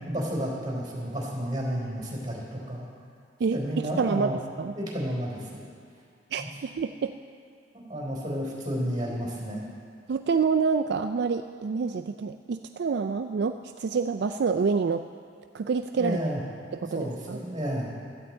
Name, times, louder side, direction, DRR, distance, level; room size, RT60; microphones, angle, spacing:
voice 1, 0.0-2.9 3.5-4.4 4.7-5.6 6.4-6.5 7.9-9.7 16.0-16.4 16.9-17.9, equal, 25° right, -4 dB, 3.8 m, -31 dB
voice 2, 3.4-4.3 4.6-4.7 6.3-7.1 10.1-15.0 15.5-16.2 16.7-17.4, right 5 dB, 60° right, 8 dB, 0.4 m, -27 dB
16.0 x 13.0 x 4.3 m, 2.2 s
head